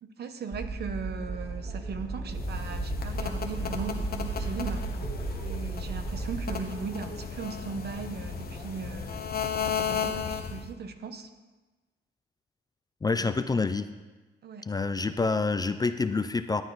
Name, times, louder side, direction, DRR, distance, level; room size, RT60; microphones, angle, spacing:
voice 1, 0.0-4.9 5.4-9.3 9.6-11.3 13.1-13.6 14.4-14.7, right 5 dB, 55° right, 9 dB, 0.9 m, -38 dB
sound 1, 0.5-6.6, right 4 dB, 10° right, 0.7 m, -35 dB
sound 2, 1.2-9.2, right 2 dB, 70° right, 2.3 m, -48 dB
sound 3, 2.3-10.7, left 6 dB, 50° left, 1.1 m, -34 dB
voice 2, 13.0-13.9 14.7-16.6, left 4 dB, 20° left, 10 dB, 0.4 m, -27 dB
11.5 x 8.9 x 4.0 m, 1.2 s
cardioid pair, 90°, 20 cm